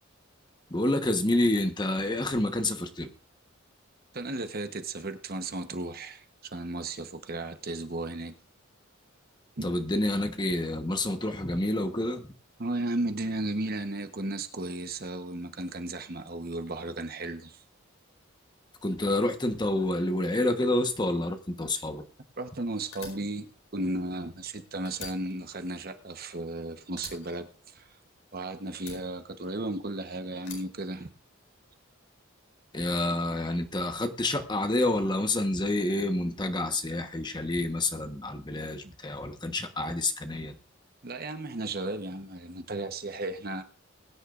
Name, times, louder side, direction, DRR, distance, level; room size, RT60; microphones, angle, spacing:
voice 1, 0.7-3.1 9.6-12.3 18.8-22.0 32.7-40.5, left 1 dB, 20° left, 1.2 m, -28 dB
voice 2, 4.1-6.2 6.5-8.3 9.6-9.7 12.6-17.6 22.4-27.9 28.3-31.1 38.8-38.9 41.0-43.6, right 2 dB, 45° right, 1.1 m, -34 dB
Fire, 22.9-24.5 24.8-26.6 27.0-28.3 28.7-29.9 30.4-31.6, left 5 dB, 75° left, 4.6 m, -47 dB
21.5 x 10.0 x 2.5 m
head